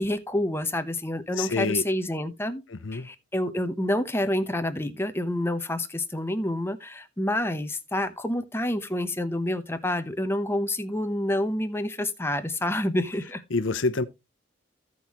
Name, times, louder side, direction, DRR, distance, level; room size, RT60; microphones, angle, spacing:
voice 1, 0.0-2.6 2.9-13.4, left 1 dB, 10° left, 0.8 m, -28 dB
voice 2, 1.4-1.8 2.7-3.1 13.5-14.0, left 3 dB, 75° left, 0.8 m, -27 dB
15.5 x 5.6 x 3.0 m
head